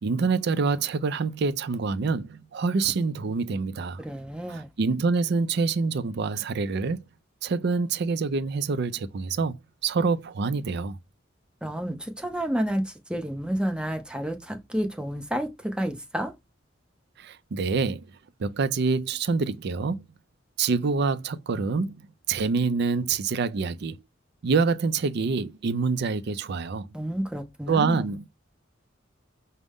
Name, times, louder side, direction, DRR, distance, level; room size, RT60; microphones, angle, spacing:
voice 1, 0.0-4.0 4.5-7.0 7.4-11.0 17.2-18.1 18.4-20.1 20.6-24.0 24.4-26.9 27.7-28.3, right 4 dB, 60° right, 0.4 m, -26 dB
voice 2, 4.0-4.7 11.6-16.3 26.9-28.1, equal, 5° right, 0.8 m, -30 dB
5.1 x 2.1 x 3.5 m
head